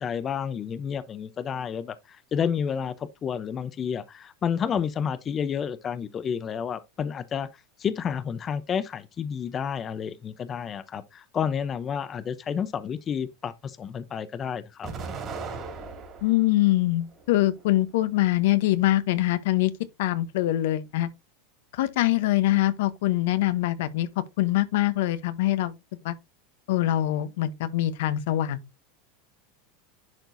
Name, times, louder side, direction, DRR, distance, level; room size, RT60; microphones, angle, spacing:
voice 1, 0.0-7.5 7.8-14.9, left 7 dB, 30° left, 0.7 m, -30 dB
Explosion, 14.8-16.5 17.0-17.9, right 4 dB, 30° right, 2.9 m, -38 dB
voice 2, 16.2-19.7 20.0-21.1 21.7-24.1 24.4-25.7 26.0-26.1 26.7-28.6, left 15 dB, 75° left, 0.8 m, -24 dB
10.5 x 4.5 x 2.6 m
supercardioid pair, 120°, 0 cm